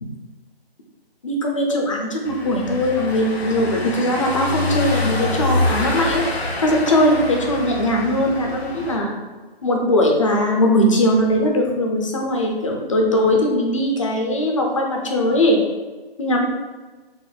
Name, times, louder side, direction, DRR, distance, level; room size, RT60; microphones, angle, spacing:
voice 1, 1.2-6.2 6.6-9.2 9.6-15.6 16.2-16.4, left 1 dB, 30° left, 1 dB, 0.5 m, -20 dB
Car passing by / Engine, 2.2-9.0, left 2 dB, 90° left, 0.9 m, -26 dB
4.1 x 2.0 x 4.0 m, 1.3 s
figure-of-eight pair, 150°, 31 cm